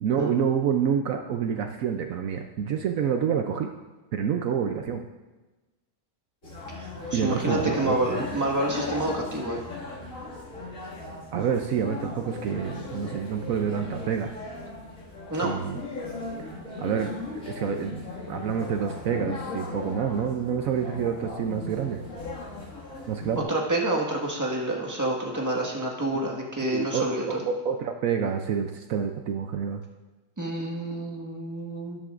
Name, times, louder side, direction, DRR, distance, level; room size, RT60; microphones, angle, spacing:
voice 1, 0.0-3.7 4.1-5.0 7.1-8.0 11.3-14.3 15.3-15.8 16.4-18.0 18.3-22.0 23.1-23.5 26.1-26.2 26.7-29.8, right 7 dB, 70° right, 5 dB, 1.0 m, -28 dB
sound 1, 6.4-23.4, left 3 dB, 60° left, 2.5 m, -37 dB
voice 2, 6.7-9.6 15.3-15.5 23.3-27.4 30.4-32.0, right 1 dB, 10° right, -1 dB, 1.5 m, -28 dB
13.0 x 11.0 x 2.5 m, 1.1 s
omnidirectional pair, 1.6 m